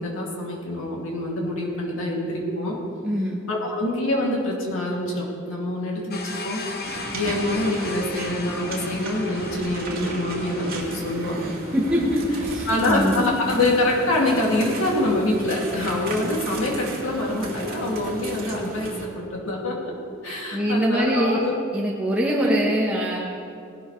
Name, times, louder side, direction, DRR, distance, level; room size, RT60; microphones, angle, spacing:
voice 1, 0.0-2.8 3.5-6.6 7.1-11.5 12.7-19.9 20.2-21.5 22.2-22.6, left 1 dB, 65° left, -3 dB, 2.7 m, -25 dB
voice 2, 3.0-3.4 11.7-12.0 12.4-13.2 20.2-21.4 21.7-23.3, equal, 5° right, -5 dB, 1.1 m, -23 dB
sound 1, 6.1-12.0, left 3 dB, 45° left, 1.1 m, -37 dB
sound 2, 6.8-19.1, right 2 dB, 45° right, 2.0 m, -34 dB
18.5 x 11.5 x 3.3 m, 2.5 s
head